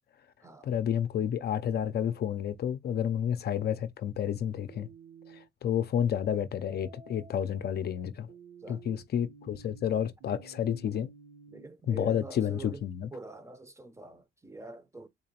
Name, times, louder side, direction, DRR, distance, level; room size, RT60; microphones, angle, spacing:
voice 1, 0.6-4.9 5.3-8.3 8.7-11.1 11.9-13.1, left 9 dB, 55° left, 0.5 m, -30 dB
sound 1, 4.7-5.5 6.6-11.7, right 5 dB, 65° right, 1.1 m, -53 dB
voice 2, 8.6-9.0 11.5-12.8 13.1-15.1, right 2 dB, 15° right, 0.6 m, -45 dB
3.9 x 2.8 x 2.8 m
cardioid pair, 90°, 20 cm